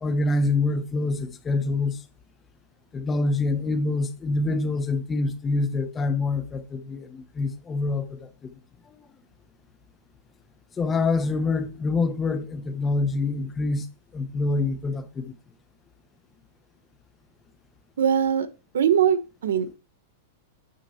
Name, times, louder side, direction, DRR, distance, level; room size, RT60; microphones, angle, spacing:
voice 1, 0.0-2.0 2.9-8.3 10.8-13.9 14.1-15.3, left 3 dB, 15° left, 1.0 m, -26 dB
voice 2, 18.0-18.5 18.7-19.8, right 8 dB, 90° right, 1.3 m, -21 dB
9.4 x 6.3 x 4.3 m
supercardioid pair, 160°, 0 cm